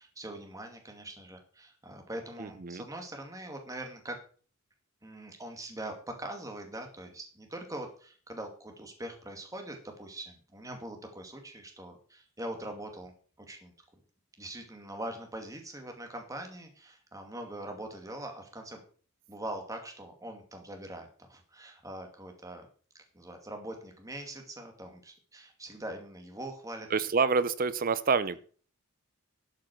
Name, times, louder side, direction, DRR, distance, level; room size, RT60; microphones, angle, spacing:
voice 1, 0.0-4.2 5.0-13.1 13.4-13.7 14.4-18.8 19.3-22.7 23.1-26.9, right 1 dB, 15° right, 3 dB, 2.4 m, -42 dB
voice 2, 2.4-2.8 26.9-28.4, right 5 dB, 40° right, 16 dB, 0.6 m, -27 dB
12.5 x 6.3 x 6.2 m, 0.42 s
head